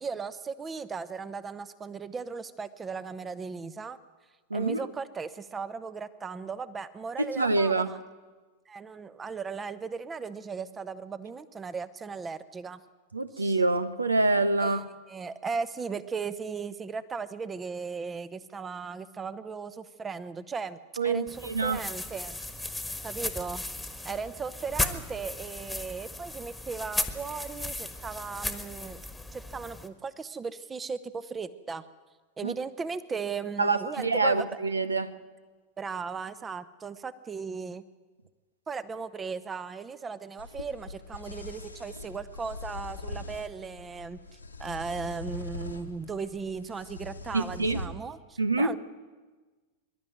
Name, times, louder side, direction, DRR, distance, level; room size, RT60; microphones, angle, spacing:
voice 1, 0.0-4.0 4.5-8.0 8.7-12.8 13.3-13.6 14.6-22.4 23.0-23.6 24.0-29.1 29.3-31.8 32.4-34.5 35.8-37.8 38.7-44.2 44.6-48.8, right 5 dB, 15° right, 15 dB, 0.9 m, -37 dB
voice 2, 7.2-7.9 13.1-14.8 21.0-21.8 32.4-32.5 33.6-33.8 34.0-35.1 47.3-47.8 48.4-48.7, right 3 dB, 80° right, 14 dB, 0.9 m, -26 dB
sound 1, 21.3-29.9, left 2 dB, 5° left, 1.6 m, -36 dB
sound 2, 40.4-47.9, left 2 dB, 80° left, 1.5 m, -42 dB
24.0 x 12.0 x 9.4 m, 1.3 s
figure-of-eight pair, 90°, 0 cm